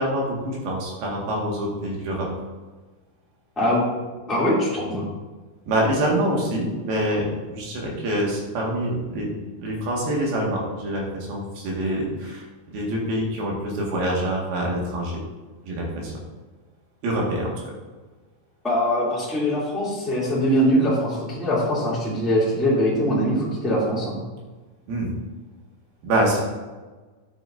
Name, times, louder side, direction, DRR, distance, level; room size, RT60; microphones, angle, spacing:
voice 1, 0.0-2.3 5.7-9.3 9.6-15.2 15.7-16.2 17.0-17.5 24.9-25.1 26.0-26.4, right 1 dB, 80° right, -2 dB, 3.8 m, -25 dB
voice 2, 4.3-5.1 18.6-24.2, equal, ahead, -8 dB, 2.0 m, -22 dB
10.0 x 8.3 x 2.7 m, 1.3 s
omnidirectional pair, 4.3 m